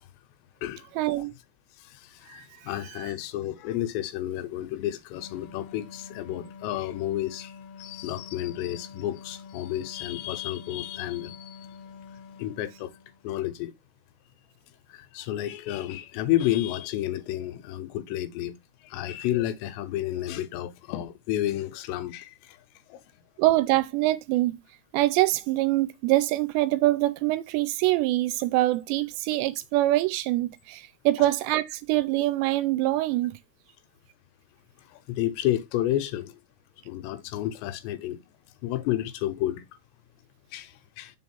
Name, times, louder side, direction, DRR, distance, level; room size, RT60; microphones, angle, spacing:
voice 1, 1.0-1.3 2.3-2.4 2.9-3.1 23.4-24.6 24.9-33.4, right 17 dB, 85° right, 2.6 m, -24 dB
voice 2, 2.3-7.5 7.8-11.6 12.4-12.9 13.2-13.7 15.1-18.5 18.9-22.3 22.9-23.0 31.2-31.3 35.1-36.3 36.9-38.2 38.6-39.6 40.5-41.1, left 13 dB, 85° left, 2.9 m, -30 dB
sound 1, 5.1-13.3, left 5 dB, 40° left, 2.5 m, -46 dB
7.0 x 3.8 x 4.3 m
omnidirectional pair, 5.1 m